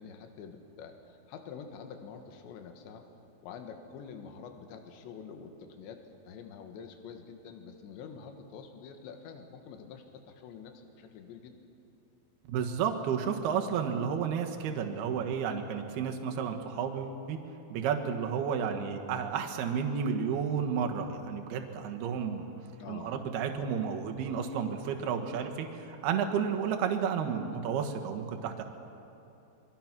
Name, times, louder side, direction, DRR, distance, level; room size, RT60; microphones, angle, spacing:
voice 1, 0.0-3.1 3.4-11.5 22.8-23.2, left 6 dB, 75° left, 5 dB, 3.7 m, -47 dB
voice 2, 12.5-17.4 17.7-22.5 22.9-28.6, right 7 dB, 65° right, 4 dB, 3.2 m, -32 dB
27.0 x 23.0 x 6.1 m, 2.8 s
omnidirectional pair, 5.2 m